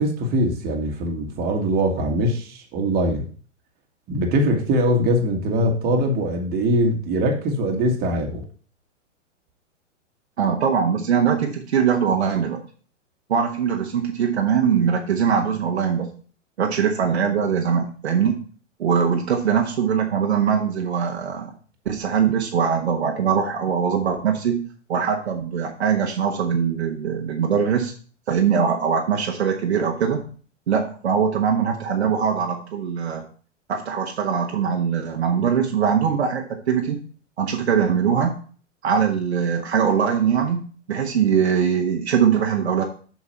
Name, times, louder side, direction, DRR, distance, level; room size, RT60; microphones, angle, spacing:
voice 1, 0.0-3.3 4.1-8.4, equal, 25° right, 2 dB, 1.8 m, -22 dB
voice 2, 10.4-12.6 13.3-16.1 16.6-18.4 18.8-21.5 21.8-27.9 28.3-30.2 30.7-33.2 33.7-37.0 37.4-38.3 38.8-40.6 40.9-42.8, right 7 dB, 60° right, 3 dB, 1.3 m, -22 dB
7.3 x 6.3 x 4.3 m, 0.42 s
figure-of-eight pair, 105°, 37 cm